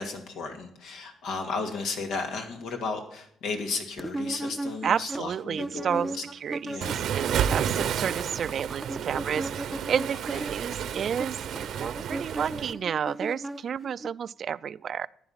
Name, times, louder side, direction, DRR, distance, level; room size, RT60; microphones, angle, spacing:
voice 1, 0.0-6.2 6.7-7.0 10.3-10.5, left 4 dB, 85° left, 4 dB, 2.4 m, -34 dB
sound 1, 4.0-7.1 7.4-14.1, right 2 dB, 10° right, 0.6 m, -37 dB
voice 2, 4.8-6.1 6.4-11.4 11.8-15.1, right 8 dB, 55° right, 18 dB, 0.4 m, -31 dB
Waves surf, 6.8-12.7, right 9 dB, 75° right, 0.8 m, -31 dB
15.0 x 9.6 x 5.8 m, 0.70 s
cardioid pair, 90°, 0 cm